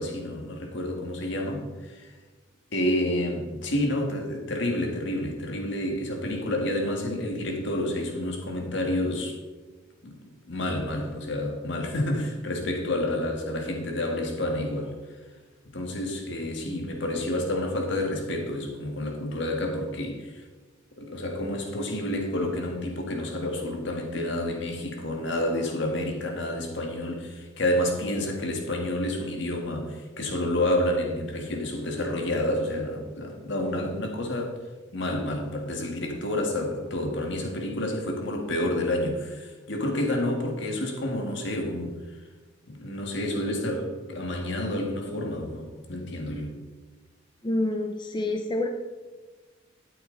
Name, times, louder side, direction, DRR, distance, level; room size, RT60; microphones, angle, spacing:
voice 1, 0.0-2.1 2.7-9.4 10.0-10.2 10.5-15.0 15.7-20.4 21.0-34.6 34.9-42.0 42.7-46.5, left 1 dB, 65° left, 2 dB, 1.9 m, -29 dB
voice 2, 47.4-48.7, left 1 dB, 25° left, 3 dB, 0.7 m, -27 dB
12.5 x 8.8 x 4.0 m, 1.3 s
head